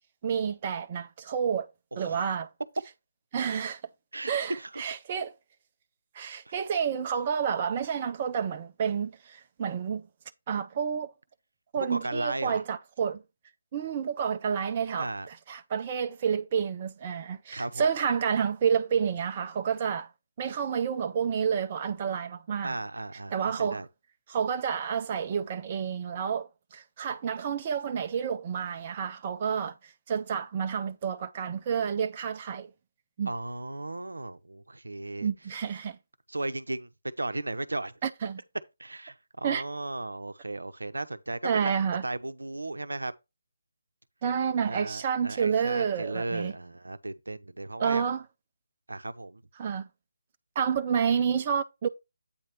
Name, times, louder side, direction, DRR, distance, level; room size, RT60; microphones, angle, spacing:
voice 1, 0.2-1.7 2.0-2.5 3.3-3.8 4.3-5.3 6.1-10.1 10.5-11.1 11.7-13.2 13.7-20.1 20.4-22.8 23.3-23.8 24.3-32.7 33.2-33.3 35.2-36.0 38.0-38.4 39.4-39.6 41.4-42.0 44.2-46.5 47.8-48.2 49.6-49.9 50.6-51.9, right 7 dB, 30° right, 0.5 m, -29 dB
voice 2, 4.1-4.8 6.5-6.6 11.7-12.6 14.9-15.3 17.5-17.9 22.6-23.9 33.3-35.3 36.3-36.9 37.2-37.9 38.8-41.7 42.0-43.1 44.7-48.0 48.9-49.4, right 2 dB, 70° right, 0.7 m, -35 dB
8.6 x 3.1 x 5.8 m
figure-of-eight pair, 145°, 0 cm